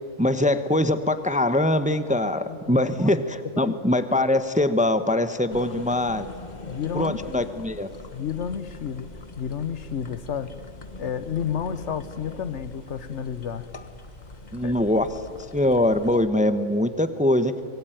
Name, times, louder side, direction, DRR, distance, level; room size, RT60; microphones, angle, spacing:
voice 1, 0.2-6.3 6.9-7.9 14.5-15.1 15.5-17.5, left 1 dB, 5° right, 11 dB, 0.8 m, -22 dB
voice 2, 2.5-2.9 3.5-3.7 6.7-7.2 8.1-9.1 9.4-10.6 11.0-13.7 14.6-14.7, left 8 dB, 70° left, 14 dB, 1.2 m, -31 dB
sound 1, 5.5-16.2, left 3 dB, 35° left, 1.2 m, -42 dB
24.5 x 22.0 x 9.1 m, 2.3 s
omnidirectional pair, 1.3 m